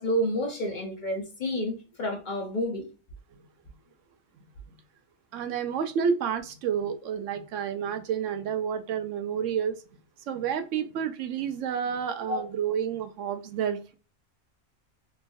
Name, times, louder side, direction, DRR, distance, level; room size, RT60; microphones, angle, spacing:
voice 1, 0.0-2.8 12.3-12.5, equal, 60° left, 0.5 m, -29 dB
voice 2, 5.3-9.8 10.3-13.9, right 7 dB, 70° right, 0.8 m, -30 dB
3.0 x 2.3 x 2.5 m
omnidirectional pair, 1.5 m